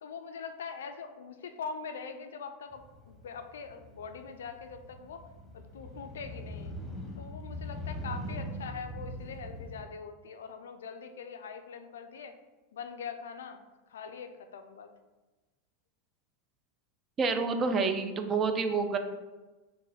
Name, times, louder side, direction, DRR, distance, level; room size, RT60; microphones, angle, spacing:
voice 1, 0.0-5.2 5.5-6.7 7.2-12.3 12.7-13.6 13.9-14.9, left 5 dB, 85° left, 8 dB, 0.3 m, -42 dB
Motorcycle, 2.7-9.8, equal, 15° left, 0.9 m, -42 dB
voice 2, 17.2-19.0, right 4 dB, 30° right, 7 dB, 0.4 m, -28 dB
3.6 x 2.1 x 4.1 m, 1.2 s
hypercardioid pair, 105°, 0 cm